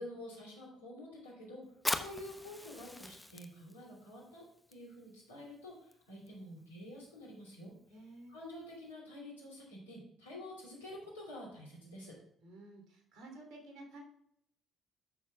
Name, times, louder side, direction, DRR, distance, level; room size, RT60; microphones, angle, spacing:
voice 1, 0.0-7.7 8.3-12.1, left 1 dB, 90° left, -4 dB, 3.1 m, -49 dB
Fire, 1.7-8.9, left 1 dB, 10° left, 0.9 m, -44 dB
voice 2, 7.9-8.3 12.4-14.0, right 2 dB, 65° right, 2 dB, 3.0 m, -52 dB
13.5 x 6.6 x 2.3 m, 0.74 s
hypercardioid pair, 50°, 0 cm